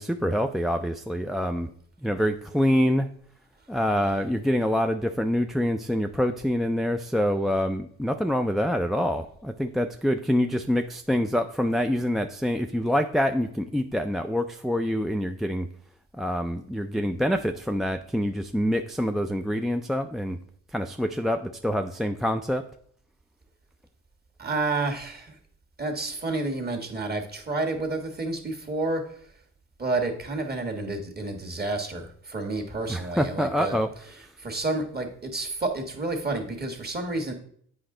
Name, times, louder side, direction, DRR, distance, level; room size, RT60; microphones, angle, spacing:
voice 1, 0.0-1.7 2.0-3.1 3.7-15.7 16.2-20.4 20.7-22.7 32.9-33.9, equal, ahead, 5 dB, 0.3 m, -26 dB
voice 2, 24.4-25.4 25.8-29.0 29.8-33.8 34.4-37.3, right 2 dB, 30° right, 3 dB, 1.5 m, -30 dB
8.0 x 5.1 x 3.7 m, 0.62 s
cardioid pair, 90°, 30 cm